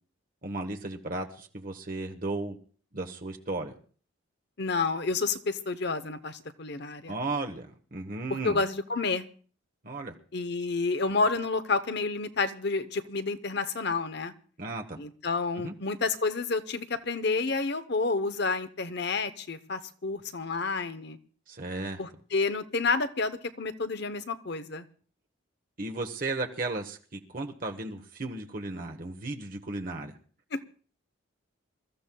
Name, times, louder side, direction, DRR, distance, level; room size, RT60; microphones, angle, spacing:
voice 1, 0.4-2.6 2.9-3.7 7.1-7.7 7.9-8.6 9.8-10.1 14.6-15.0 15.6-15.7 21.5-22.0 25.8-30.2, right 2 dB, 45° right, 3 dB, 1.1 m, -35 dB
voice 2, 4.6-7.2 8.4-9.2 10.3-14.3 15.0-21.2 22.0-24.9 30.5-30.6, left 4 dB, 55° left, 11 dB, 0.9 m, -30 dB
26.5 x 14.0 x 2.3 m, 0.43 s
head